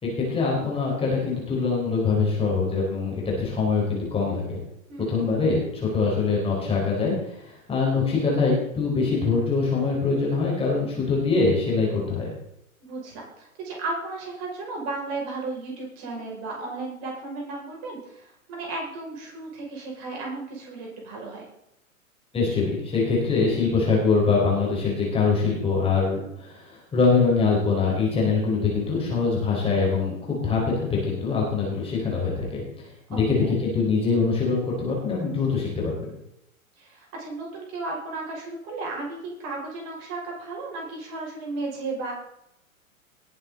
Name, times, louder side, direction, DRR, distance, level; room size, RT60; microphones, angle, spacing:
voice 1, 0.0-4.6 5.1-7.1 7.4-12.3 22.3-32.6 33.1-36.1, left 4 dB, 15° left, -3 dB, 4.8 m, -23 dB
voice 2, 4.9-5.2 12.8-21.5 33.1-33.5 36.8-42.1, right 3 dB, 35° right, -1 dB, 5.9 m, -34 dB
20.0 x 8.9 x 4.0 m, 0.79 s
figure-of-eight pair, 110°, 42 cm